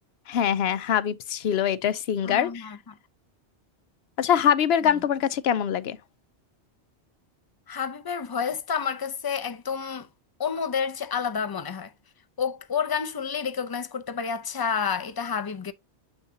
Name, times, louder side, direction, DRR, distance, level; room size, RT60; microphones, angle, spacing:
voice 1, 0.3-2.8 4.2-6.0, left 9 dB, 70° left, 0.8 m, -24 dB
voice 2, 2.2-2.8 7.7-10.1 10.4-11.9 12.4-15.7, left 6 dB, 30° left, 0.4 m, -29 dB
7.2 x 6.5 x 2.7 m
omnidirectional pair, 1.1 m